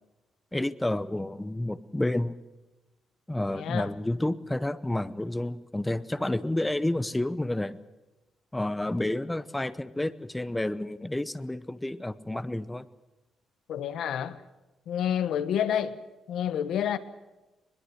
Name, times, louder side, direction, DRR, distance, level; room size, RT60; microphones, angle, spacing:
voice 1, 0.5-2.4 3.3-7.8 8.5-12.9, left 1 dB, 10° left, 0.8 m, -30 dB
voice 2, 3.5-3.9 13.7-14.4 14.9-16.0 16.3-17.0, left 9 dB, 70° left, 1.4 m, -29 dB
22.0 x 21.5 x 8.0 m
cardioid pair, 160°, 0 cm